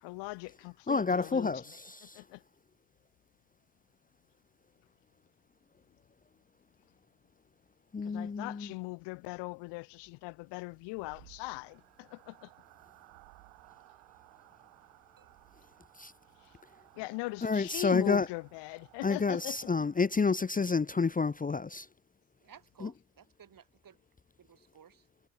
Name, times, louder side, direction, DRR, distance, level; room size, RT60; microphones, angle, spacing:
voice 1, 0.0-1.8 2.1-2.4 8.0-12.5 17.0-19.6, left 25 dB, 75° left, 0.7 m, -40 dB
voice 2, 0.9-2.2 7.9-8.7 15.9-16.1 17.4-18.3 19.0-21.8 22.8-22.9, left 4 dB, 20° left, 0.9 m, -29 dB
sound 1, 10.5-20.5, right 35 dB, 85° right, 3.2 m, -60 dB
voice 3, 22.4-24.0 24.4-25.1, right 8 dB, 50° right, 7.0 m, -57 dB
hypercardioid pair, 60°, 42 cm